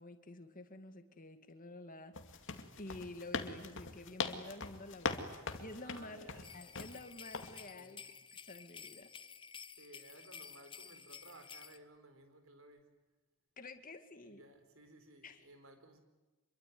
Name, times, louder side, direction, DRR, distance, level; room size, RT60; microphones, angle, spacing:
voice 1, 0.0-2.1 2.8-9.1 13.6-14.4 15.2-15.5, left 2 dB, 40° left, 7 dB, 2.3 m, -50 dB
sound 1, 2.1-7.0 7.3-7.6, left 4 dB, 60° left, 2.3 m, -41 dB
voice 2, 5.8-6.5 7.7-8.1 9.8-12.9 14.2-16.0, right 2 dB, 65° right, 8 dB, 4.5 m, -58 dB
sound 2, 6.4-11.8, left 6 dB, 25° left, 0.9 m, -52 dB
26.5 x 23.0 x 9.6 m, 1.2 s
head